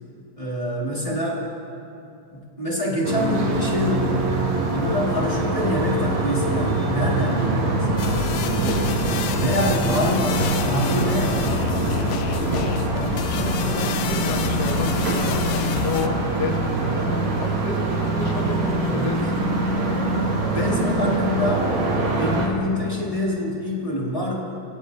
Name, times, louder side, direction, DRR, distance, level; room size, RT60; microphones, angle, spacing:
voice 1, 0.4-1.4 2.3-4.2 4.7-8.7 9.4-11.8 18.9-19.2 20.5-21.7 22.1-24.4, left 1 dB, 15° left, -4 dB, 1.2 m, -26 dB
sound 1, 3.0-22.5, right 2 dB, 60° right, 3.0 m, -24 dB
sound 2, 8.0-16.1, left 8 dB, 80° left, 1.7 m, -29 dB
sound 3, 11.7-21.2, right 2 dB, 45° right, 3.8 m, -39 dB
voice 2, 13.3-19.3 20.5-21.3, left 4 dB, 55° left, 2 dB, 1.1 m, -32 dB
20.5 x 16.5 x 2.7 m, 2.8 s
omnidirectional pair, 3.5 m